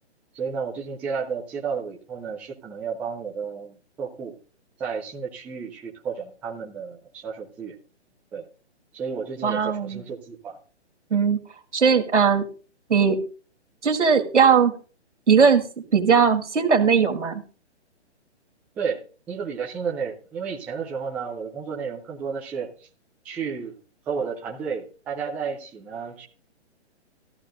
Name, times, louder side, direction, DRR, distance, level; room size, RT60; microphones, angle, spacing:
voice 1, 0.3-4.3 4.8-7.8 8.3-8.4 8.9-10.6 18.8-22.7 23.2-23.7 24.1-26.3, right 6 dB, 5° right, -2 dB, 0.5 m, -32 dB
voice 2, 9.4-10.0 11.1-11.4 11.7-12.5 12.9-13.2 13.8-14.7 15.3-15.6 15.9-17.4, right 6 dB, 80° right, 4 dB, 2.1 m, -19 dB
14.5 x 13.5 x 2.6 m, 0.38 s
hypercardioid pair, 140°, 35 cm